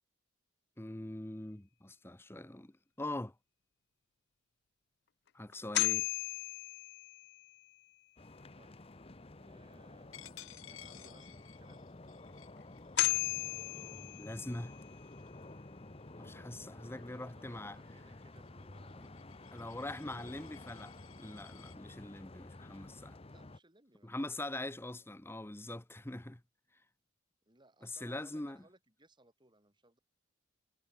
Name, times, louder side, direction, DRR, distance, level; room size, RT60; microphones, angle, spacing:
voice 1, 0.8-2.7 3.0-3.3 5.3-6.1 14.2-14.7 16.2-17.8 19.0-19.1 19.5-20.9 21.2-23.2 24.0-26.4 27.8-28.6, left 1 dB, 10° left, 0.7 m, -42 dB
voice 2, 5.4-6.0 8.6-8.8 9.3-10.3 10.7-11.9 16.8-19.3 20.0-20.3 23.3-25.1 27.5-30.0, right 2 dB, 20° right, 5.5 m, -65 dB
sound 1, 5.5-7.6 12.6-12.7 13.0-14.9, left 17 dB, 55° left, 0.4 m, -35 dB
sound 2, 8.2-23.6, left 2 dB, 30° left, 1.0 m, -52 dB
Coin (dropping), 10.1-15.5 16.0-16.3 16.6-21.8, left 11 dB, 75° left, 6.9 m, -57 dB
head